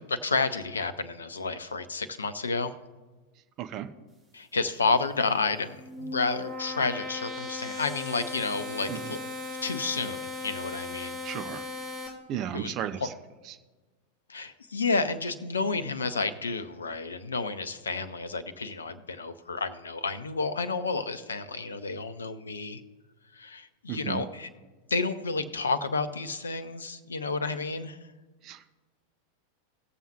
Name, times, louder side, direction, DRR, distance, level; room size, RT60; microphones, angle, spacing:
voice 1, 0.0-2.7 4.3-9.2 9.6-11.2 12.5-13.1 14.3-22.8 23.3-24.5 24.9-28.1, left 4 dB, 70° left, 12 dB, 0.7 m, -31 dB
sound 1, 5.6-12.1, left 3 dB, 20° right, 2.4 m, -37 dB
voice 2, 11.2-11.6 12.3-13.0 23.9-24.2 28.4-28.7, right 10 dB, 35° right, 9 dB, 0.7 m, -34 dB
19.0 x 7.2 x 2.9 m, 1.3 s
figure-of-eight pair, 90°, 0 cm